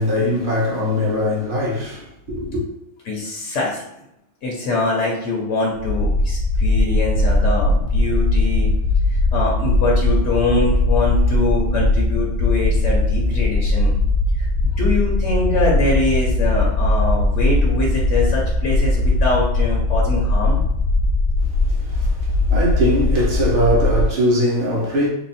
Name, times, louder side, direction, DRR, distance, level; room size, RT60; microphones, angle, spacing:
voice 1, 0.0-2.6 21.4-25.1, equal, 50° right, 1.3 m, -21 dB
voice 2, 3.1-3.8 4.4-8.7 9.1-13.9 14.4-20.6, left 2 dB, 85° left, 1.2 m, -23 dB
sound 1, 5.7-24.0, left 2 dB, 70° left, 0.8 m, -19 dB
4.1 x 2.0 x 4.1 m
omnidirectional pair, 1.2 m